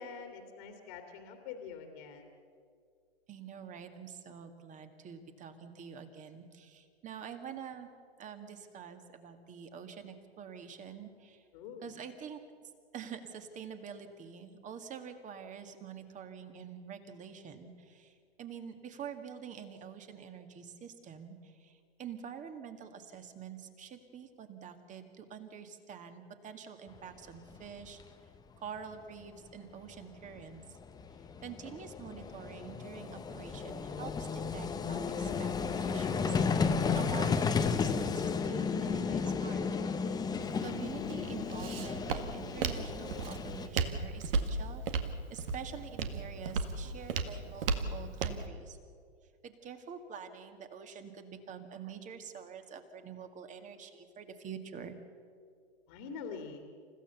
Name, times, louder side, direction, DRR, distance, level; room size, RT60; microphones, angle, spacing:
voice 1, 0.0-2.3 11.5-12.0 55.9-56.6, left 5 dB, 45° left, 5 dB, 2.5 m, -45 dB
voice 2, 3.3-7.9 8.2-11.4 11.8-12.4 12.9-18.1 18.4-28.0 28.6-30.6 31.4-36.3 36.9-39.9 40.6-48.8 49.4-55.0, right 7 dB, 25° right, 7 dB, 2.0 m, -46 dB
Vehicle, 27.6-27.7 27.8-28.0 30.0-30.1 30.3-43.7, left 5 dB, 10° left, 1.0 m, -33 dB
Walk footsteps, 40.4-48.5, right 4 dB, 60° right, 1.9 m, -36 dB
28.5 x 15.5 x 7.0 m, 2.2 s
figure-of-eight pair, 110°, 32 cm